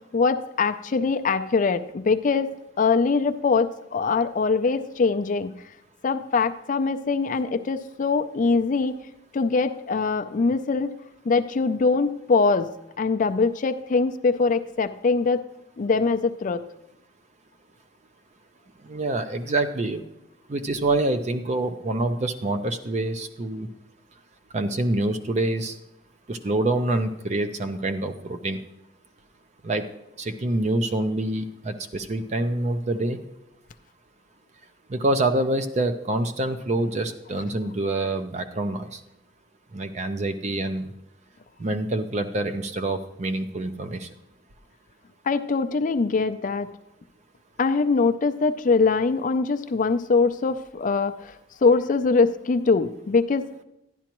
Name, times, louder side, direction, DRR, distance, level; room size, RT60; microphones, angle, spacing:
voice 1, 0.1-5.5 6.0-9.0 9.3-10.9 11.3-12.7 13.0-15.4 15.8-16.6 45.3-46.7 47.6-51.3 51.6-53.6, left 4 dB, 45° left, 10 dB, 0.4 m, -22 dB
voice 2, 18.9-20.0 20.5-23.7 24.5-25.8 26.3-28.6 29.6-29.8 30.2-33.2 34.9-39.0 39.7-40.9 41.6-44.1, right 2 dB, 35° right, 8 dB, 0.5 m, -26 dB
11.5 x 10.5 x 3.0 m, 0.87 s
head